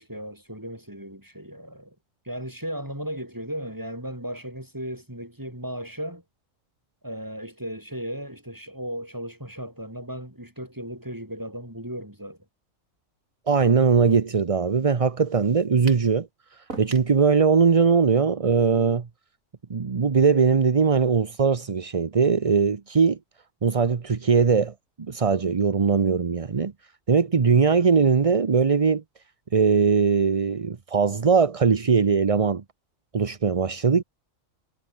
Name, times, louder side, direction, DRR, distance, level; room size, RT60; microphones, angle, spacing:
voice 1, 0.0-2.0 2.2-6.2 7.0-12.4, equal, 15° right, 7.3 m, -36 dB
voice 2, 13.5-19.1 19.7-23.2 23.6-26.7 27.1-29.0 29.5-32.6 33.1-34.0, right 5 dB, 30° right, 0.7 m, -20 dB
sound 1, 15.9-16.1 16.7-17.1, right 3 dB, 85° right, 3.6 m, -38 dB
omnidirectional pair, 1.4 m